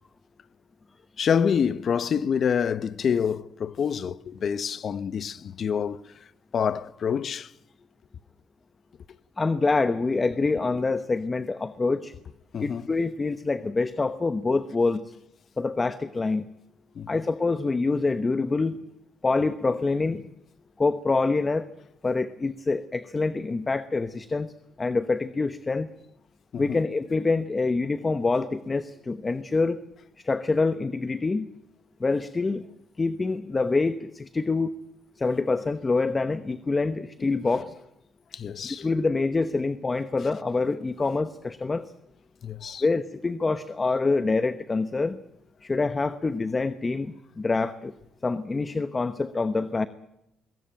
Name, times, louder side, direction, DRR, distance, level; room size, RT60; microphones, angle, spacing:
voice 1, 1.2-6.0 6.5-7.5 12.5-12.8 17.0-17.1 26.5-26.8 37.2-37.6 38.3-38.9 42.4-42.8, left 7 dB, 55° left, 0.9 m, -27 dB
voice 2, 9.4-12.1 12.6-15.1 15.6-16.5 17.1-18.8 19.2-20.2 20.8-21.7 22.0-24.5 24.8-25.9 26.6-29.8 30.2-31.5 32.0-32.6 33.0-34.7 35.2-37.7 38.6-41.8 42.8-45.2 45.6-47.9 48.2-49.9, left 3 dB, 25° left, 1.0 m, -26 dB
22.0 x 17.5 x 9.0 m
cardioid pair, 90°, 0 cm